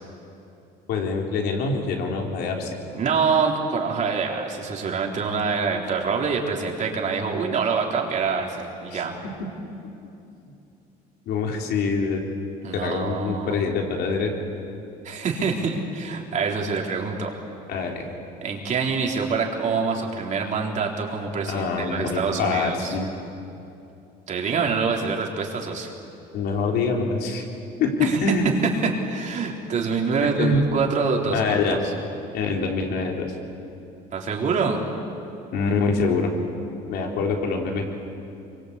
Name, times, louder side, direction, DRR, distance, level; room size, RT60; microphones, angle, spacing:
voice 1, 0.9-2.7 8.9-9.0 11.3-12.2 12.7-14.4 17.7-18.0 21.5-23.1 26.3-27.4 27.8-28.5 30.2-30.6 31.3-31.8 32.3-33.3 35.5-36.3 36.9-37.8, left 4 dB, 70° left, 2 dB, 3.9 m, -25 dB
voice 2, 2.9-9.1 12.6-13.5 15.0-17.3 18.4-23.0 24.3-25.9 28.0-28.2 28.6-31.9 34.1-34.8, right 5 dB, 45° right, 0 dB, 4.1 m, -25 dB
25.5 x 23.5 x 8.5 m, 2.8 s
cardioid pair, 115°, 17 cm